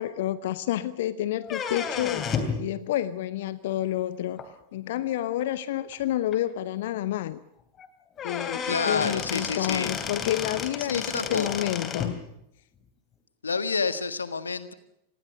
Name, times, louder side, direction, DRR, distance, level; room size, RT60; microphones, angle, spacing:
voice 1, 0.0-2.2 2.6-4.4 4.7-7.4 8.2-12.2, left 13 dB, 55° left, 17 dB, 0.8 m, -29 dB
sound 1, 1.4-2.6 4.4-4.5 5.4-5.5 5.9-6.0 6.3-6.4 7.8-7.9 8.2-12.1, left 6 dB, 25° left, 3.1 m, -32 dB
voice 2, 8.6-9.9 10.8-11.7 13.4-14.7, left 4 dB, 75° left, 13 dB, 1.5 m, -29 dB
26.5 x 20.0 x 6.5 m, 0.82 s
figure-of-eight pair, 90°, 0 cm